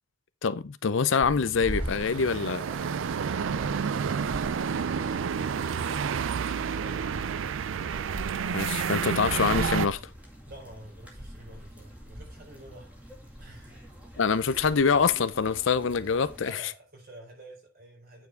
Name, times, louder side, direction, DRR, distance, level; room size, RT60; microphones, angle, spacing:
voice 1, 0.4-2.6 8.5-10.0 14.2-16.6, left 5 dB, 70° left, 0.5 m, -25 dB
sound 1, 1.2-16.4, equal, 5° right, 2.1 m, -43 dB
sound 2, 1.6-9.9, right 6 dB, 70° right, 0.4 m, -30 dB
voice 2, 6.6-7.4 10.5-12.9 13.4-13.8 16.4-18.3, right 1 dB, 50° right, 4.2 m, -49 dB
9.1 x 4.7 x 4.6 m
head